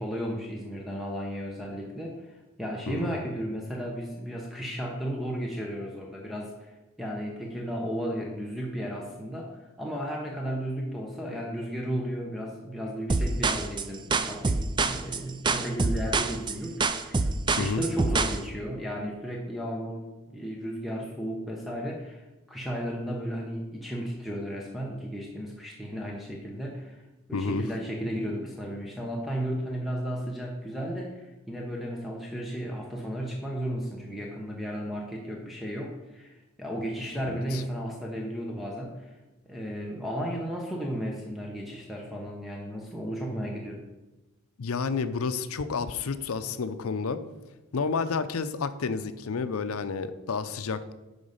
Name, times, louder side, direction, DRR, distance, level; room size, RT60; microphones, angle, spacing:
voice 1, 0.0-16.8 17.0-27.0 27.3-39.2 39.5-43.8, equal, ahead, -1 dB, 0.8 m, -34 dB
sound 1, 13.1-18.4, right 3 dB, 20° right, 0.4 m, -26 dB
voice 2, 27.3-27.6 37.3-37.6 44.6-47.2 47.7-50.9, left 5 dB, 75° left, 11 dB, 0.6 m, -30 dB
10.0 x 4.0 x 5.5 m, 1.1 s
head